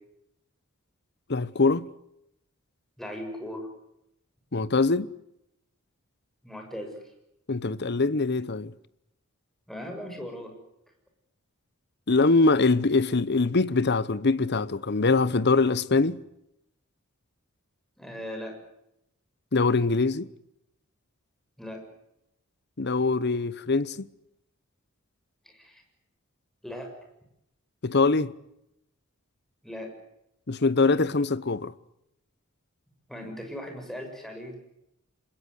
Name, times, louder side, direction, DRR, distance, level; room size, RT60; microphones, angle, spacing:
voice 1, 1.3-1.9 4.5-5.1 7.5-8.7 12.1-16.2 19.5-20.3 22.8-24.1 27.8-28.3 30.5-31.7, left 3 dB, 50° left, 0.9 m, -23 dB
voice 2, 3.0-3.7 6.4-7.0 9.7-10.5 18.0-18.6 21.6-21.8 25.5-25.8 26.6-26.9 29.6-29.9 33.1-34.6, equal, ahead, 6.9 m, -38 dB
26.5 x 21.0 x 8.0 m
head